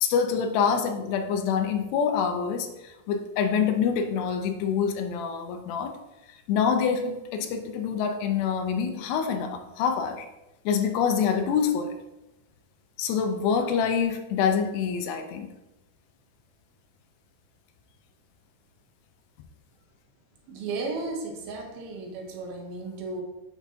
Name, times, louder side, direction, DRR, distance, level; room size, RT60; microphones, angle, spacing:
voice 1, 0.0-6.0 6.3-10.3 10.7-12.0 13.0-15.5, left 6 dB, 80° left, 5 dB, 2.7 m, -26 dB
voice 2, 20.5-23.2, right 3 dB, 70° right, 1 dB, 2.5 m, -34 dB
8.1 x 5.8 x 2.8 m, 0.97 s
omnidirectional pair, 5.1 m